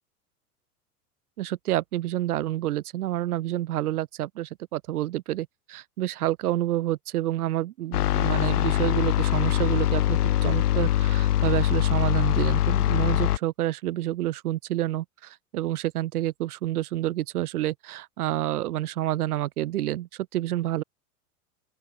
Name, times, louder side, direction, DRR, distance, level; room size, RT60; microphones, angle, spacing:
voice 1, 1.4-20.8, right 14 dB, 75° right, 0.8 m, -29 dB
sound 1, 7.9-13.4, left 13 dB, 75° left, 0.9 m, -23 dB
open air
hypercardioid pair, 90°, 46 cm